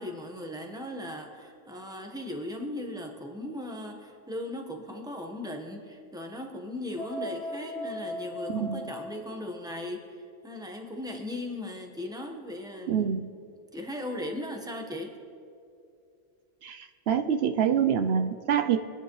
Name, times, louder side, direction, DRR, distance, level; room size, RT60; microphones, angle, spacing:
voice 1, 0.0-13.1 13.7-15.1, left 1 dB, 5° right, 2 dB, 1.1 m, -38 dB
sound 1, 7.0-9.8, left 1 dB, 65° left, 2.2 m, -38 dB
voice 2, 8.5-8.9 12.9-13.3 16.6-18.8, right 8 dB, 75° right, 7 dB, 0.8 m, -26 dB
24.0 x 10.0 x 3.1 m, 2.5 s
omnidirectional pair, 1.1 m